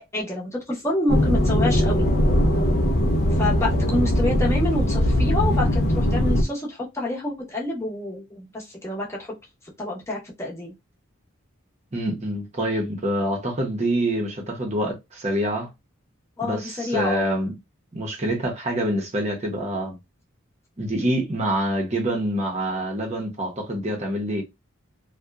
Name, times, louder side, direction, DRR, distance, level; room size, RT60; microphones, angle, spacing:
voice 1, 0.0-2.1 3.3-9.3 9.8-10.7 16.4-17.3, left 2 dB, 15° left, 0.8 m, -28 dB
sound 1, 1.1-6.4, equal, 50° left, 0.4 m, -20 dB
voice 2, 11.9-15.7 16.4-17.5 17.9-20.0 20.8-24.4, right 1 dB, 35° right, 0.7 m, -26 dB
2.7 x 2.1 x 2.3 m
head